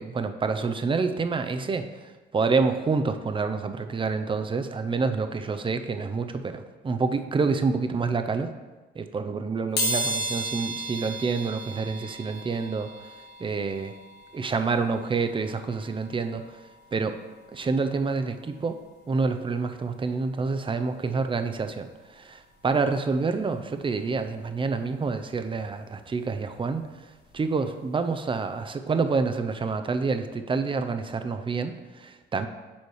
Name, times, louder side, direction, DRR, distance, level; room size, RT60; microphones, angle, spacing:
voice 1, 0.0-1.9 2.3-8.5 9.0-12.9 13.4-13.9 14.3-16.4 16.9-17.1 17.5-18.8 19.1-26.9 27.3-32.5, right 4 dB, 25° right, 8 dB, 0.6 m, -27 dB
sound 1, 9.8-20.4 20.9-21.0 22.1-22.2 22.5-24.6 25.0-27.6 27.9-28.1 28.4-28.5, right 1 dB, 55° left, 1.4 m, -36 dB
7.1 x 4.7 x 4.8 m, 1.2 s
cardioid pair, 90°, 20 cm